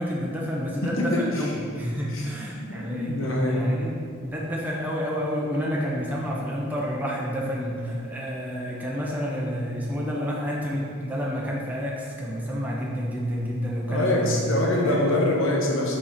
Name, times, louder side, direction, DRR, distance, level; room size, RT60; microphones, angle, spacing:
voice 1, 0.0-3.2 3.5-15.0, equal, 10° right, -4 dB, 0.6 m, -29 dB
voice 2, 2.7-3.6 13.9-16.0, left 1 dB, 75° left, -2 dB, 1.1 m, -24 dB
6.1 x 4.4 x 4.2 m, 2.3 s
head